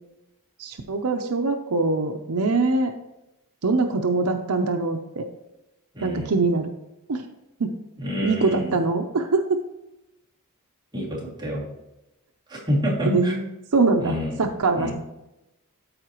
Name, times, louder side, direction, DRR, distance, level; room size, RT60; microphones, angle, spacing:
voice 1, 0.6-2.9 3.6-5.3 6.0-6.7 7.1-7.3 7.6-7.7 8.2-9.6 13.0-13.4 13.7-14.9, right 3 dB, 80° right, 5 dB, 0.7 m, -23 dB
voice 2, 5.9-6.3 8.0-8.8 10.9-11.7 12.5-13.3 14.0-14.4 14.8-14.9, equal, 20° right, -6 dB, 2.4 m, -28 dB
13.0 x 4.9 x 3.0 m, 0.93 s
head